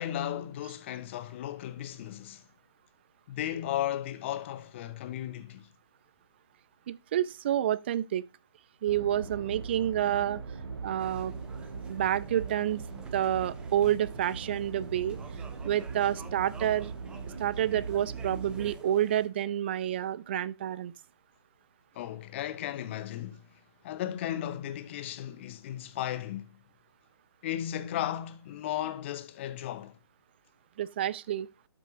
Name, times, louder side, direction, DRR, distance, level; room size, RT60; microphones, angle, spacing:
voice 1, 0.0-2.4 3.3-5.7 21.9-23.4 23.8-26.5 27.4-29.9, left 11 dB, 30° left, 0.8 m, -35 dB
voice 2, 6.9-8.2 8.8-10.4 10.8-11.4 11.9-12.8 13.1-15.2 15.6-16.9 17.4-20.9 30.8-31.5, right 11 dB, 25° right, 0.3 m, -29 dB
sound 1, 8.9-18.7, right 5 dB, 65° right, 1.5 m, -40 dB
sound 2, 11.0-19.3, right 3 dB, 5° right, 0.7 m, -52 dB
12.0 x 6.2 x 2.5 m
figure-of-eight pair, 140°, 14 cm